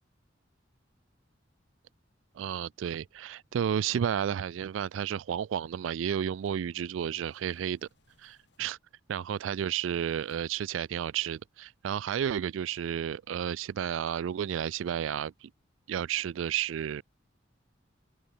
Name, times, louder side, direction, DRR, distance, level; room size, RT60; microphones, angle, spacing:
voice 1, 2.3-7.9 8.2-8.8 9.1-15.5 15.9-17.0, right 9 dB, 85° right, 0.3 m, -32 dB
sound 1, 6.7-9.0 9.5-10.7, left 3 dB, 65° left, 6.6 m, -73 dB
open air
head